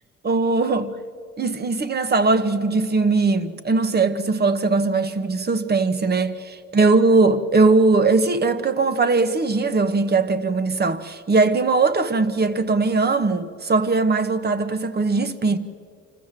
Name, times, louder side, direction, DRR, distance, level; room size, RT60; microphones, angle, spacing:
voice 1, 0.2-1.0 1.4-15.6, right 3 dB, 35° right, 1.1 m, -20 dB
25.0 x 14.5 x 7.5 m
cardioid pair, 90°, 30 cm